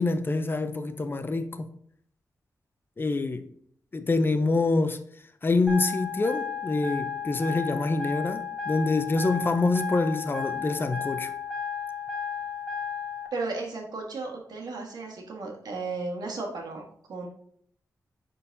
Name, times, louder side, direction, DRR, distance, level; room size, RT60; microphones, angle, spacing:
voice 1, 0.0-1.7 3.0-3.4 3.9-5.0 5.4-11.3, left 3 dB, 35° left, 9 dB, 0.5 m, -26 dB
sound 1, 5.7-13.3, left 7 dB, 15° right, 1.9 m, -33 dB
voice 2, 13.3-16.8 17.1-17.3, right 3 dB, 85° right, 1 dB, 1.6 m, -34 dB
9.7 x 3.9 x 2.7 m, 0.65 s
wide cardioid pair, 115°, 7 cm